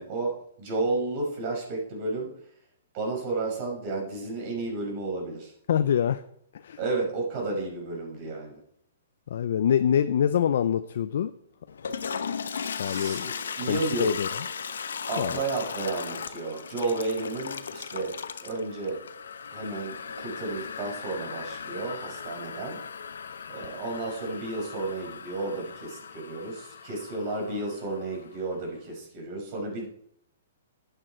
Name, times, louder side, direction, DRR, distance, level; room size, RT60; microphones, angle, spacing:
voice 1, 0.0-2.3 2.9-5.5 6.8-8.6 12.8-14.2 15.1-18.2 18.4-19.0 19.5-22.8 23.5-29.9, right 2 dB, 40° right, 0 dB, 5.5 m, -32 dB
voice 2, 5.7-6.2 6.6-6.8 9.3-11.3 12.8-13.3 13.7-14.3 15.2-15.4, left 9 dB, 65° left, 11 dB, 0.5 m, -25 dB
Toilet flush, 11.7-28.4, left 6 dB, 85° left, 0.9 m, -37 dB
11.0 x 9.0 x 4.5 m, 0.70 s
hypercardioid pair, 155°, 0 cm